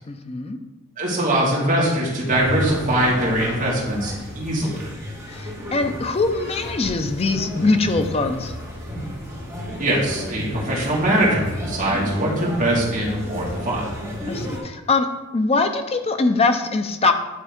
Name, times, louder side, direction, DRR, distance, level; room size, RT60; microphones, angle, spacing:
voice 1, 0.1-0.6 5.3-8.5 14.3-15.1 15.3-17.1, left 3 dB, 25° left, 7 dB, 0.5 m, -22 dB
voice 2, 1.0-4.8 9.8-13.8, right 1 dB, 40° right, -5 dB, 1.8 m, -22 dB
sound 1, 2.2-14.6, equal, 15° right, 2.3 m, -32 dB
9.6 x 3.6 x 3.6 m, 1.1 s
head